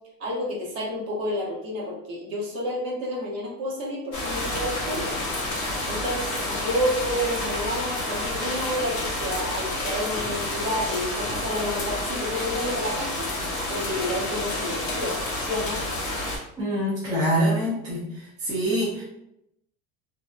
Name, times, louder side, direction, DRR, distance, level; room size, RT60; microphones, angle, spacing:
voice 1, 0.2-5.1 5.9-13.3 13.7-15.8, equal, 40° right, -3 dB, 0.7 m, -30 dB
sound 1, 4.1-16.4, left 1 dB, 35° left, 0.7 m, -29 dB
voice 2, 16.6-18.1 18.4-19.0, equal, 10° right, -8 dB, 0.4 m, -24 dB
2.6 x 2.1 x 2.3 m, 0.81 s
cardioid pair, 170°, 39 cm